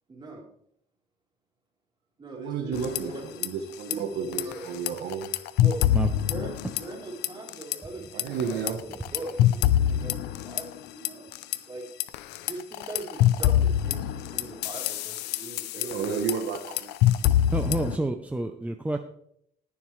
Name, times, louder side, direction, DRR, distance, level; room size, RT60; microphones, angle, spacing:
voice 1, 0.1-0.4 2.2-3.2 3.9-4.6 5.6-5.8 6.3-9.3 9.7-11.3 11.7-11.8 12.4-16.2, right 2 dB, 25° right, -2 dB, 3.8 m, -41 dB
voice 2, 2.3-3.1 3.4-5.3 8.1-8.8 15.8-16.9, right 6 dB, 75° right, 6 dB, 1.2 m, -31 dB
sound 1, 2.7-3.5 3.7-3.9 4.3-7.0 7.2-7.8 8.2-11.6 12.0-18.0, left 12 dB, 90° left, 0.6 m, -25 dB
voice 3, 17.4-19.0, right 2 dB, 10° right, 6 dB, 0.7 m, -29 dB
19.0 x 7.1 x 3.3 m, 0.71 s
cardioid pair, 110°, 17 cm